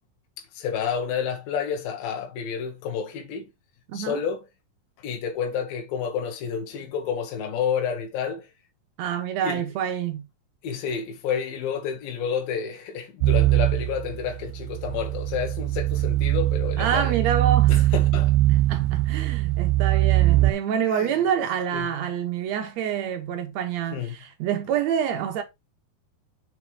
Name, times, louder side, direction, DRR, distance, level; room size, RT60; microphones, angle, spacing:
voice 1, 0.5-3.5 3.9-4.4 5.0-8.5 9.4-9.6 10.6-17.1 17.7-18.3 20.9-21.1 21.7-21.8 23.9-24.2, left 7 dB, 80° left, 2.7 m, -30 dB
voice 2, 3.9-4.2 9.0-10.2 16.8-17.9 18.5-25.4, right 9 dB, 70° right, 1.7 m, -27 dB
sound 1, 13.2-20.5, right 16 dB, 85° right, 2.4 m, -22 dB
6.2 x 3.7 x 4.6 m
omnidirectional pair, 4.1 m